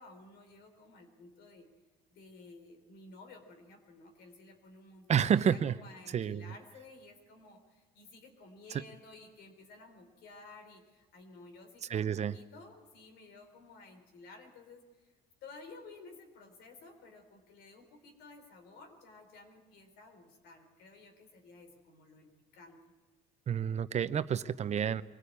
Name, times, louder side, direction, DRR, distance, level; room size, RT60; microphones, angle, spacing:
voice 1, 0.0-1.7 2.1-15.1 15.4-22.8, left 3 dB, 85° left, 6 dB, 4.1 m, -54 dB
voice 2, 5.1-5.8 6.1-6.5 8.7-8.8 11.9-12.4 23.5-25.0, right 8 dB, 40° right, 13 dB, 0.7 m, -29 dB
24.0 x 17.5 x 8.6 m, 1.4 s
cardioid pair, 110°, 17 cm